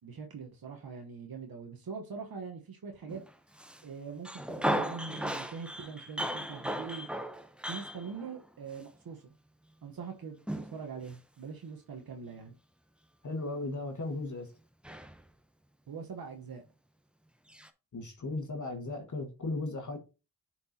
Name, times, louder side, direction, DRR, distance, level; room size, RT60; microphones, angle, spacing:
voice 1, 0.0-3.2 3.8-7.1 7.6-9.3 9.8-12.5 15.9-16.6, right 5 dB, 70° right, 1.1 m, -43 dB
Male speech man speaking, 3.1-3.8 4.2-8.5 10.5-10.8 11.0-11.1 14.8-15.2 17.5-17.7, equal, 5° right, 0.7 m, -36 dB
voice 2, 13.2-14.5 17.9-20.0, left 2 dB, 50° left, 1.5 m, -36 dB
9.6 x 4.5 x 2.7 m
cardioid pair, 55°, 37 cm